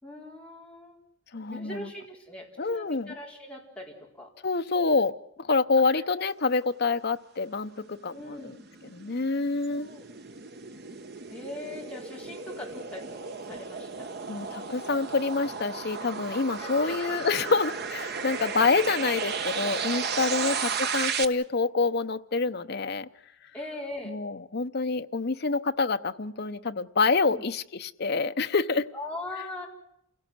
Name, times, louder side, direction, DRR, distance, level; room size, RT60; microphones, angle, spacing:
voice 1, 0.0-1.0 1.5-4.3 8.1-8.6 9.7-10.1 11.3-14.2 16.6-17.1 20.3-20.6 23.5-24.2 27.3-27.4 28.9-29.7, left 1 dB, 5° left, -2 dB, 4.7 m, -41 dB
voice 2, 1.3-1.9 2.6-3.1 4.4-8.5 8.9-9.9 14.3-23.1 24.1-28.9, left 4 dB, 50° left, 10 dB, 0.8 m, -27 dB
sound 1, 8.1-21.3, right 5 dB, 55° right, 1.1 m, -34 dB
28.5 x 17.0 x 7.8 m, 0.77 s
head